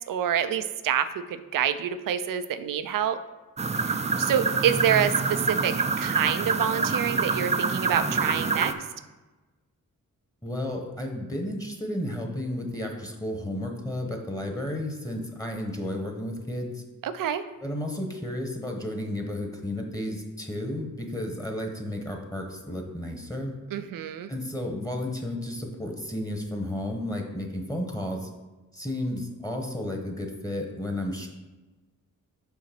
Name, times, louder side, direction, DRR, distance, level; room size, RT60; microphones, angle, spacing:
voice 1, 0.1-3.2 3.8-8.7 17.0-17.4 23.7-24.3, right 9 dB, 85° right, 12 dB, 0.5 m, -27 dB
sound 1, 3.6-8.7, right 4 dB, 20° right, 0.4 m, -26 dB
voice 2, 10.4-16.8 17.6-23.5 24.3-28.3 28.7-31.3, left 1 dB, 10° left, 2 dB, 1.1 m, -32 dB
5.7 x 3.9 x 5.9 m, 1.2 s
cardioid pair, 70°, 32 cm